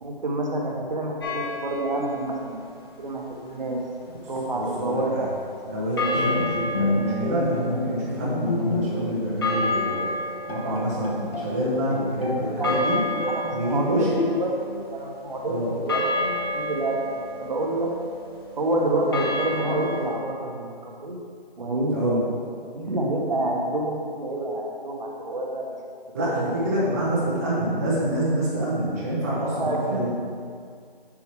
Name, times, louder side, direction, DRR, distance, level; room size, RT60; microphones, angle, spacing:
voice 1, 0.0-2.7 3.0-3.8 4.3-5.3 6.2-6.3 12.6-12.8 13.3-14.0 14.4-17.9 18.6-20.7 21.0-21.2 21.6-22.3 22.7-25.8 26.3-26.5 29.3-30.2, right 2 dB, 45° right, 0 dB, 1.1 m, -28 dB
sound 1, 1.2-2.3 6.0-20.1, left 2 dB, 25° left, 0.8 m, -31 dB
voice 2, 4.5-5.3 5.7-10.1 10.5-13.0 13.5-14.1 15.5-15.7 21.9-22.2 26.1-30.2, right 1 dB, 15° right, -8 dB, 0.8 m, -26 dB
Bowed string instrument, 6.2-9.2 9.5-9.7 10.2-10.3 10.5-12.4 12.7-13.5 14.2-14.8, left 2 dB, 70° left, 1.3 m, -29 dB
7.5 x 7.3 x 3.1 m, 2.2 s
figure-of-eight pair, 160°, 30 cm